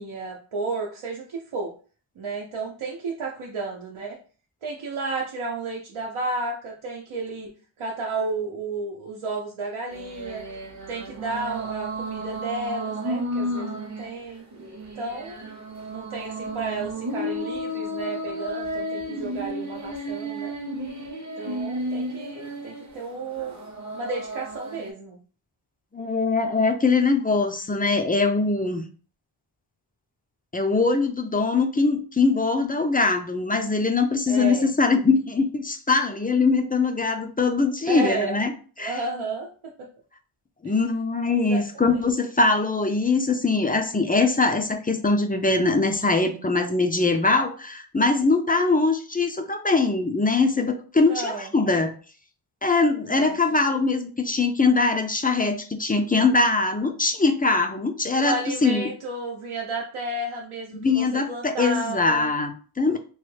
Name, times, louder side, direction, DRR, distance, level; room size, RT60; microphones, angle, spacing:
voice 1, 0.0-1.7 2.2-4.2 4.6-7.5 7.8-10.4 10.9-14.4 14.9-15.4 15.9-20.5 21.4-23.6 23.9-25.2 34.3-34.7 37.9-38.4 38.8-39.9 40.6-40.7 41.3-42.1 51.1-51.5 53.0-53.4 58.2-62.3, right 3 dB, 80° right, -2 dB, 0.7 m, -32 dB
sound 1, 9.9-24.9, equal, 35° right, 0.7 m, -33 dB
voice 2, 25.9-28.8 30.5-38.5 38.8-39.0 40.6-51.9 52.6-58.9 60.7-63.0, left 3 dB, 20° left, 5 dB, 0.3 m, -22 dB
3.0 x 2.2 x 3.2 m, 0.39 s
wide cardioid pair, 75°, 49 cm